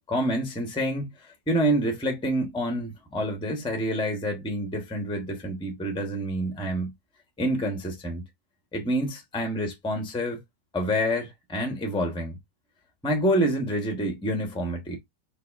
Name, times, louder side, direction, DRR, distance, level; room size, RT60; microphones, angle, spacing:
voice 1, 0.1-6.9 7.4-8.2 8.7-10.4 10.7-12.4 13.0-15.0, equal, 5° left, 0.8 m, -27 dB
4.8 x 2.8 x 3.5 m
omnidirectional pair, 2.0 m